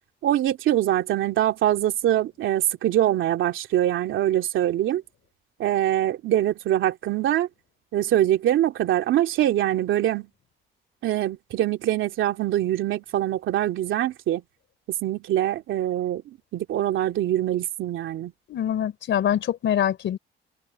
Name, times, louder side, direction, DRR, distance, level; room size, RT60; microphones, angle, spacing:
voice 1, 0.2-5.0 5.6-7.5 7.9-10.3 11.0-14.4 15.0-16.2 16.5-18.3, right 12 dB, 80° right, 2.7 m, -23 dB
voice 2, 18.5-20.2, left 10 dB, 70° left, 3.6 m, -24 dB
cardioid pair, 90°, 20 cm